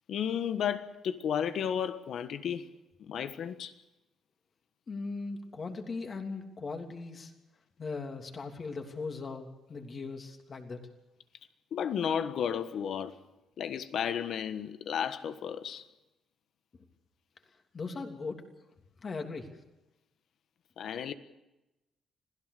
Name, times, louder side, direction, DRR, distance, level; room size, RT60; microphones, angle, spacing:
voice 1, 0.1-2.7 3.0-3.7 11.7-13.2 13.6-15.8 20.8-21.1, left 8 dB, 65° left, 1.4 m, -33 dB
voice 2, 4.9-7.3 7.8-10.8 17.7-18.4 19.0-19.5, left 4 dB, 40° left, 3.1 m, -39 dB
26.0 x 16.5 x 6.8 m
cardioid pair, 90°, 0 cm